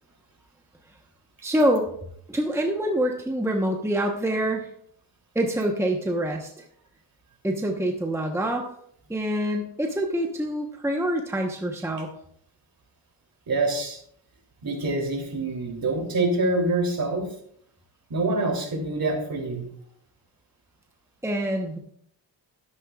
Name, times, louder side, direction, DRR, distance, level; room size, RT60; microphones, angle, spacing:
voice 1, 1.4-1.9 2.3-4.7 5.3-6.6 7.4-8.7 9.1-12.1 21.2-21.8, right 1 dB, 5° right, 2 dB, 1.0 m, -26 dB
voice 2, 13.5-14.0 14.6-17.3 18.1-19.7, right 2 dB, 50° right, 1 dB, 3.2 m, -26 dB
12.0 x 11.0 x 2.4 m, 0.67 s
wide cardioid pair, 105°, 43 cm